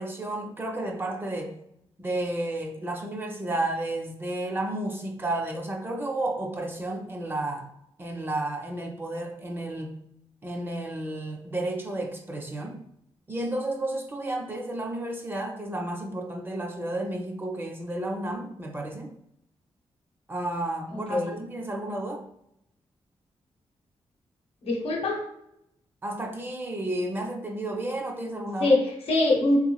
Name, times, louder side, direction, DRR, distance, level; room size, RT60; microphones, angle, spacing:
voice 1, 0.0-1.5 2.0-7.7 8.0-10.0 10.4-12.8 13.3-19.1 20.3-22.2 26.0-28.8, right 1 dB, 20° right, 2 dB, 0.5 m, -32 dB
voice 2, 20.9-21.4 24.6-25.2 28.6-29.6, left 2 dB, 75° left, 0 dB, 0.8 m, -23 dB
3.4 x 2.9 x 2.3 m, 0.77 s
wide cardioid pair, 145°, 10 cm